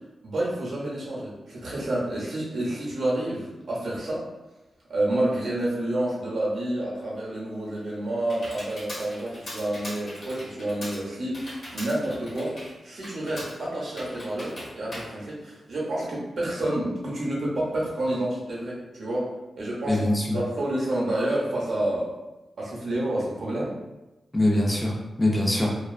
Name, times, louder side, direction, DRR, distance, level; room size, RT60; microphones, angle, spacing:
voice 1, 0.2-4.2 4.9-19.3 19.6-20.0 20.3-22.1 22.6-23.7, right 1 dB, 75° right, -5 dB, 0.8 m, -29 dB
Computer keyboard, 7.5-16.1, equal, 70° left, 1.0 m, -41 dB
voice 2, 19.9-20.4 24.3-25.8, left 1 dB, 20° left, -2 dB, 0.6 m, -23 dB
2.4 x 2.3 x 2.4 m, 1.0 s
cardioid pair, 50°, 0 cm